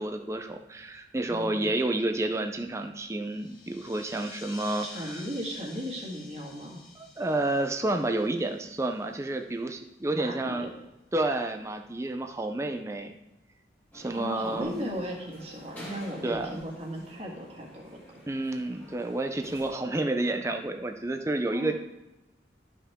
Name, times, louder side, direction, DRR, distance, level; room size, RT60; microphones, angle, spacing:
voice 1, 0.0-5.2 7.0-10.7 11.1-13.1 13.9-14.9 16.2-16.6 18.3-21.7, right 2 dB, 15° right, 5 dB, 0.4 m, -30 dB
voice 2, 1.3-1.7 4.8-6.8 10.1-10.7 14.1-18.0 21.5-21.8, equal, 35° right, -1 dB, 1.8 m, -37 dB
sound 1, 3.2-9.3, left 3 dB, 55° left, 1.8 m, -49 dB
sound 2, 13.9-19.7, equal, 10° left, 1.9 m, -49 dB
12.5 x 5.7 x 3.6 m, 1.0 s
head